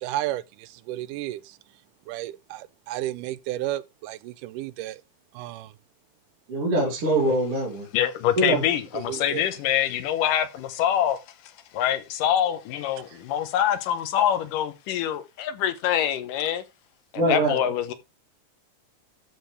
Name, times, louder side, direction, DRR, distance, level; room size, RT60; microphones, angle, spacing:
voice 1, 0.0-1.6 2.1-5.0 5.3-5.7 8.9-9.5, right 14 dB, 85° right, 2.2 m, -33 dB
voice 2, 6.5-7.9 8.4-8.6 17.1-17.7, right 1 dB, 45° right, 3.5 m, -23 dB
voice 3, 7.9-11.2 11.7-16.6 17.1-17.9, left 10 dB, 85° left, 2.7 m, -25 dB
12.5 x 7.0 x 3.3 m
omnidirectional pair, 3.7 m